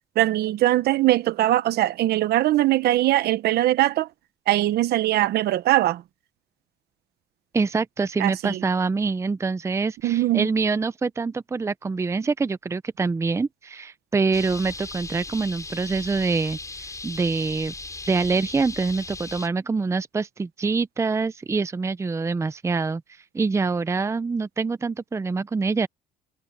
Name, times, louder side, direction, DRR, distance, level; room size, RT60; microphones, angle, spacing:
voice 1, 0.2-4.1 4.5-6.0 8.2-8.6 10.0-10.5, right 15 dB, 70° right, 1.1 m, -21 dB
voice 2, 7.5-17.7 18.1-23.0 23.3-25.9, right 4 dB, 15° right, 0.6 m, -25 dB
sound 1, 14.3-19.5, left 3 dB, 20° left, 7.8 m, -37 dB
cardioid pair, 110°, 17 cm